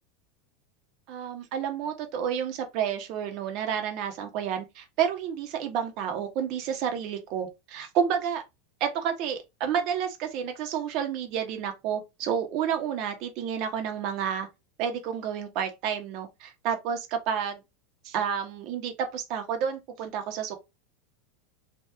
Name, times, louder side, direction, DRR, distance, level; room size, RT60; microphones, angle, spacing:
voice 1, 1.1-8.4 8.8-14.5 14.8-17.6 18.0-20.5, right 8 dB, 50° right, 1.1 m, -30 dB
2.9 x 2.7 x 3.5 m
supercardioid pair, 145°, 0 cm